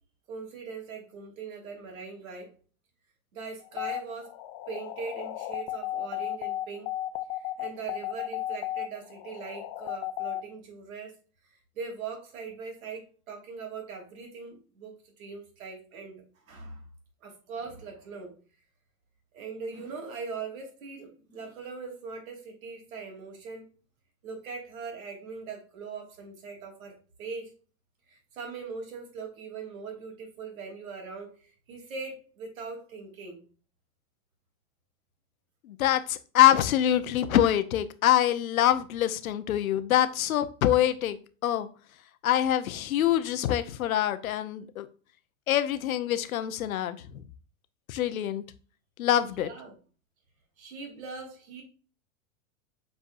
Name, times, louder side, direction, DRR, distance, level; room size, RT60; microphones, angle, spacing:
voice 1, 0.3-2.5 3.3-4.3 4.7-6.9 7.3-11.1 11.5-16.8 17.2-18.3 19.3-23.7 24.2-27.5 28.1-33.4 49.1-49.8 50.6-51.6, right 5 dB, 80° right, 1 dB, 3.1 m, -41 dB
sound 1, 3.6-10.4, left 14 dB, 50° left, 0.8 m, -34 dB
voice 2, 35.7-41.2 41.4-41.7 42.2-44.8 45.5-47.0 47.9-48.4 49.0-49.5, left 12 dB, 85° left, 12 dB, 0.9 m, -25 dB
8.1 x 4.6 x 2.6 m, 0.38 s
hypercardioid pair, 115°, 41 cm